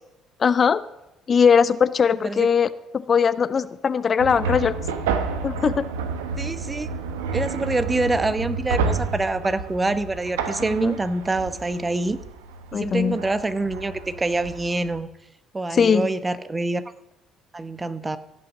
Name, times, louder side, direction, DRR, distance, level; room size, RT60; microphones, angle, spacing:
voice 1, 0.4-0.8 1.3-2.7 2.9-4.7 5.4-5.9 10.7-10.9 12.7-13.2 15.7-16.1, left 6 dB, 45° left, 15 dB, 0.5 m, -20 dB
sound 1, 4.2-15.0, right 4 dB, 90° right, 1.0 m, -30 dB
voice 2, 6.4-6.9 7.3-12.2 12.7-15.1 15.5-16.8 17.5-18.2, right 2 dB, 20° right, 13 dB, 1.0 m, -25 dB
16.0 x 5.9 x 7.3 m, 0.92 s
hypercardioid pair, 60°, 0 cm